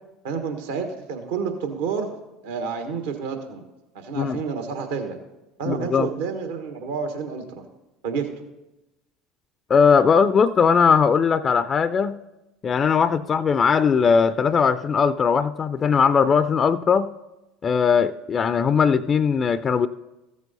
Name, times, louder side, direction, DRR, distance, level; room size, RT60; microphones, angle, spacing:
voice 1, 0.2-2.1 2.4-3.6 3.9-5.2 5.6-7.6 8.0-8.3, right 6 dB, 70° right, 6 dB, 1.3 m, -29 dB
voice 2, 5.7-6.1 9.7-12.2 12.6-17.1 17.6-19.9, left 6 dB, 35° left, 14 dB, 0.4 m, -19 dB
14.5 x 7.1 x 4.0 m, 0.98 s
hypercardioid pair, 70°, 0 cm